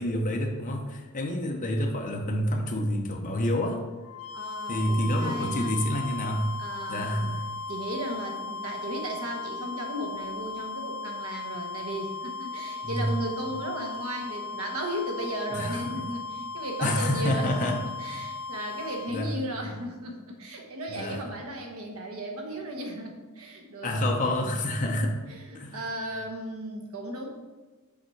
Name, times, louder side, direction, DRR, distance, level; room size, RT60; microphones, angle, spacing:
voice 1, 0.0-3.8 4.7-6.5 6.9-7.4 12.8-13.1 15.5-15.8 16.8-17.8 19.1-19.3 20.9-21.2 23.8-25.1 25.5-25.8, left 1 dB, 35° left, 1 dB, 0.7 m, -28 dB
sound 1, 4.0-19.3, left 3 dB, 65° left, 0.3 m, -37 dB
voice 2, 4.3-5.7 6.6-7.2 7.7-24.1 24.8-27.3, right 1 dB, 70° right, 1 dB, 1.1 m, -35 dB
7.2 x 4.2 x 4.6 m, 1.3 s
head